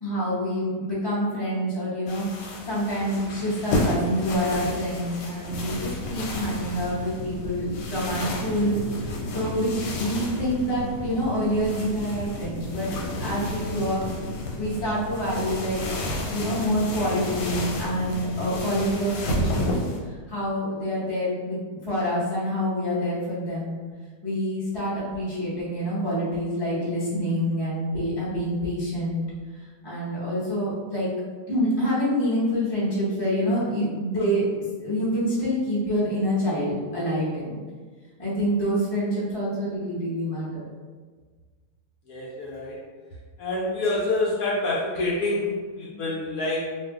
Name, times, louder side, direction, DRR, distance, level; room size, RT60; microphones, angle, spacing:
voice 1, 0.0-2.2 2.6-12.9 13.2-14.0 14.6-15.8 16.3-19.6 20.3-23.8 24.2-29.2 29.8-31.1 31.5-34.4 34.8-37.5 38.2-40.7 45.9-46.1, equal, 20° left, -8 dB, 0.6 m, -27 dB
sound 1, 2.1-20.0, left 1 dB, 90° left, 1.3 m, -33 dB
sound 2, 5.5-18.9, equal, 75° right, 0.6 m, -35 dB
voice 2, 42.1-42.8 43.4-46.6, left 2 dB, 65° left, -6 dB, 1.0 m, -27 dB
2.6 x 2.4 x 3.5 m, 1.5 s
omnidirectional pair, 1.9 m